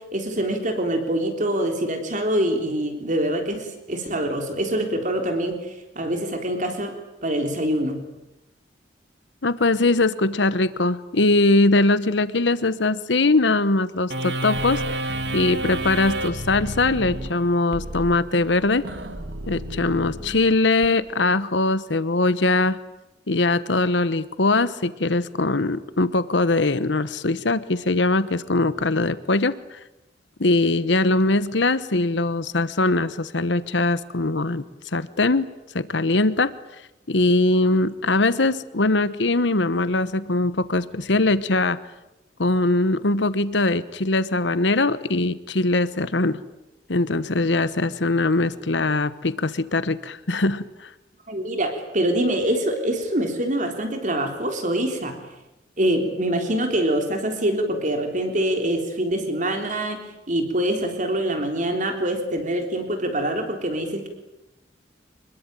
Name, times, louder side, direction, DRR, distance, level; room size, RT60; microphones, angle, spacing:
voice 1, 0.0-5.6 6.0-6.9 7.2-8.0 51.3-55.2 55.8-60.0 60.3-64.1, right 1 dB, 45° right, 5 dB, 3.6 m, -24 dB
voice 2, 9.4-18.8 19.5-22.8 23.3-29.8 30.4-34.6 34.9-35.5 35.7-36.5 37.1-41.8 42.4-46.4 46.9-50.9, left 2 dB, 75° left, 15 dB, 1.1 m, -21 dB
sound 1, 14.1-20.9, right 1 dB, 70° right, 2.8 m, -30 dB
25.5 x 22.0 x 9.0 m, 0.94 s
head